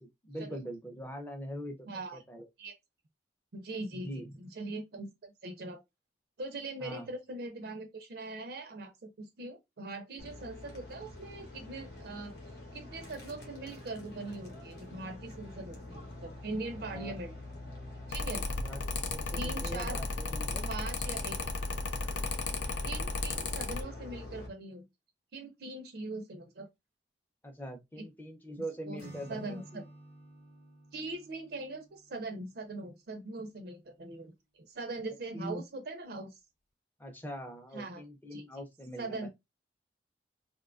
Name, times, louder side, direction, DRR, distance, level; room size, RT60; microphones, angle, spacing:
voice 1, 0.0-2.5 3.9-4.3 6.8-7.1 16.8-17.2 18.5-18.8 19.1-20.7 27.4-29.8 35.3-35.6 37.0-39.3, equal, 10° left, 0.5 m, -43 dB
voice 2, 1.9-2.2 2.6-2.7 3.5-4.1 4.4-5.8 6.4-12.4 12.7-17.3 18.1-18.5 19.4-20.0 20.7-21.4 22.8-24.9 25.3-26.7 28.0-28.1 28.9-29.0 29.3-29.8 30.9-36.4 37.7-38.0 38.3-38.4 39.0-39.3, right 2 dB, 60° right, 0.4 m, -41 dB
sound 1, 10.2-24.5, left 2 dB, 60° left, 0.8 m, -46 dB
Mechanical fan, 18.1-23.8, left 3 dB, 85° left, 0.5 m, -35 dB
Acoustic guitar / Strum, 29.0-32.9, right 1 dB, 40° left, 0.9 m, -53 dB
2.6 x 2.2 x 2.4 m
head